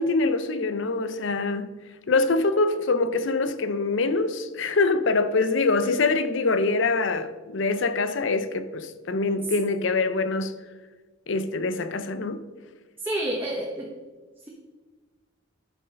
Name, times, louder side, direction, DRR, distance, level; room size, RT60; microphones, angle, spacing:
voice 1, 0.0-1.7 2.1-10.5 11.3-12.4, left 3 dB, 70° left, 0.6 m, -24 dB
voice 2, 13.0-13.9, right 1 dB, 10° right, 0.9 m, -29 dB
10.5 x 4.7 x 5.1 m
head